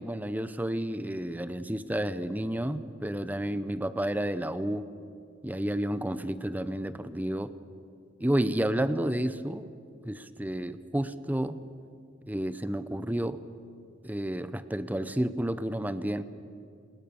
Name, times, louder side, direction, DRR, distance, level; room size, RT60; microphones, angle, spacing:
voice 1, 0.0-4.8 5.4-7.5 8.2-9.7 10.0-11.6 12.3-13.4 14.0-16.2, right 1 dB, 10° right, 13 dB, 0.8 m, -31 dB
29.0 x 20.0 x 7.1 m, 2.4 s
head